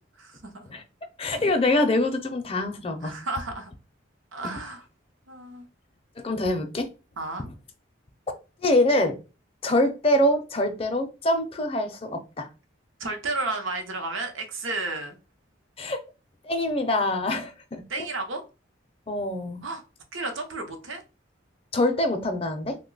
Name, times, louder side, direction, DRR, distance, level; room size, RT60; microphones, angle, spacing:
voice 1, 0.2-0.8 3.0-3.7 4.3-4.8 5.3-5.7 7.2-7.5 13.0-15.2 17.9-18.4 19.6-19.8 20.1-21.0, right 2 dB, 85° right, 0.7 m, -32 dB
voice 2, 1.2-3.2 6.2-6.9 8.6-9.2 9.6-12.5 15.8-16.0 16.4-18.1 19.1-19.6 21.7-22.8, left 1 dB, 30° left, 0.4 m, -24 dB
2.8 x 2.2 x 3.8 m
head